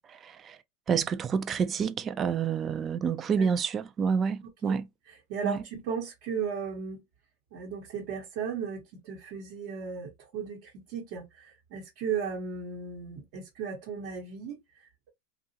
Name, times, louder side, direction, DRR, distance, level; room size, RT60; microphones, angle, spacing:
voice 1, 0.1-0.6 0.9-4.8 5.4-5.6, right 6 dB, 30° right, 0.4 m, -28 dB
voice 2, 5.1-7.0 7.5-15.1, right 6 dB, 60° right, 1.0 m, -36 dB
2.7 x 2.4 x 2.8 m
supercardioid pair, 120°, 0 cm